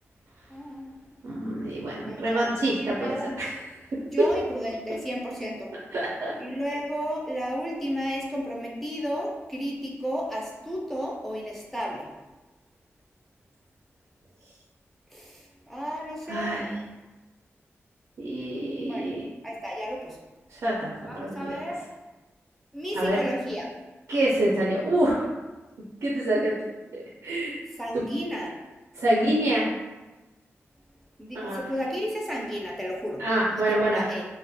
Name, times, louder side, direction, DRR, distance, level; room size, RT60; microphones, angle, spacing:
voice 1, 0.5-1.0 2.0-2.5 2.7-3.4 4.1-5.7 6.4-12.1 15.1-16.6 18.9-19.0 19.4-20.2 21.1-21.8 22.7-23.7 27.7-28.5 31.2-33.2 33.5-34.3, equal, 5° left, -3 dB, 0.3 m, -32 dB
voice 2, 1.2-3.5 5.9-6.3 16.3-16.7 18.2-19.3 20.5-21.6 22.9-23.2 24.1-25.2 26.0-26.5 26.9-27.6 27.9-28.0 29.0-29.7 31.3-31.6 33.2-34.0, right 1 dB, 80° right, -5 dB, 0.4 m, -26 dB
2.3 x 2.1 x 2.6 m, 1.2 s
wide cardioid pair, 125°, 5 cm